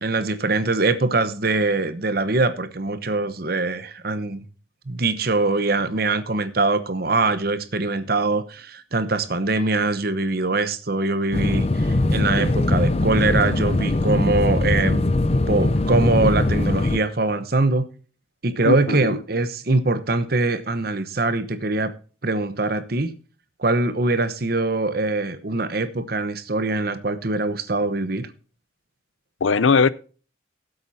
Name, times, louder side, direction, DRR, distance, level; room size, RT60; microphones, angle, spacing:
voice 1, 0.0-4.5 4.9-15.0 15.5-17.8 18.4-21.9 22.2-23.1 23.6-28.3, right 3 dB, 50° right, 1.0 m, -23 dB
sound 1, 11.3-17.0, left 2 dB, 30° left, 0.5 m, -21 dB
voice 2, 18.6-19.2 29.4-29.9, left 5 dB, 80° left, 0.6 m, -19 dB
18.0 x 7.9 x 2.8 m
head